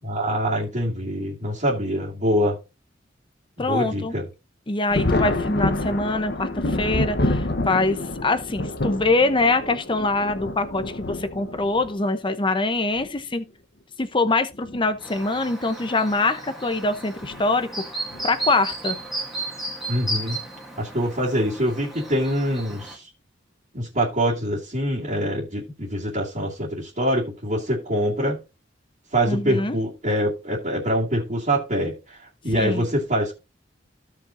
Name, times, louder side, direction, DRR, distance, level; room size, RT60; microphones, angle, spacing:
voice 1, 0.0-2.6 3.6-4.3 19.9-20.4 20.8-23.1 23.7-28.4 29.1-33.3, equal, 40° right, 2.4 m, -24 dB
voice 2, 3.6-4.1 4.7-13.4 14.0-17.7 18.2-19.0 29.3-29.8 32.5-32.9, left 2 dB, 25° left, 0.8 m, -24 dB
Thunder, 4.9-12.0 13.0-13.1 14.5-14.8 15.2-15.3 17.2-17.4 18.1-18.5, left 1 dB, 60° left, 1.0 m, -27 dB
Chirp tweet, 15.0-23.0, right 2 dB, ahead, 2.1 m, -34 dB
16.0 x 5.3 x 2.7 m
head